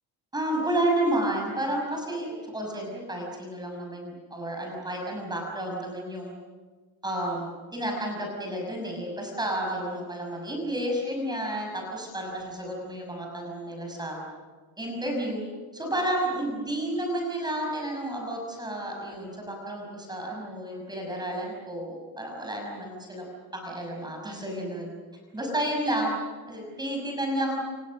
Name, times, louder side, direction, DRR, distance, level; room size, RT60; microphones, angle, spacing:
voice 1, 0.3-6.3 7.0-14.2 14.8-15.4 15.7-23.2 23.5-24.9 25.3-26.2 26.5-27.6, right 1 dB, 10° right, 0 dB, 6.0 m, -31 dB
29.0 x 28.5 x 6.4 m, 1.4 s
cardioid pair, 165°, 37 cm